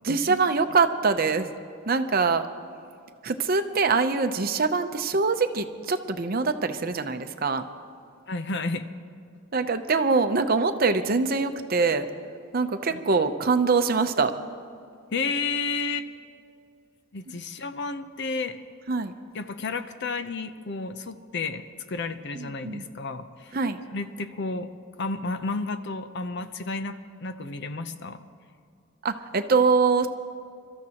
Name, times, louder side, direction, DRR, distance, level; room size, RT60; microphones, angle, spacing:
voice 1, 0.0-1.5 1.9-2.5 3.2-7.6 9.5-12.1 12.5-14.3 18.9-19.1 22.3-22.9 23.5-23.8 29.0-30.1, right 4 dB, 45° right, 8 dB, 0.7 m, -24 dB
voice 2, 8.3-8.9 15.1-16.1 17.1-18.6 19.3-23.5 23.9-24.7 25.0-28.2, left 3 dB, 55° left, 10 dB, 0.7 m, -31 dB
28.5 x 13.5 x 3.0 m, 2.3 s
head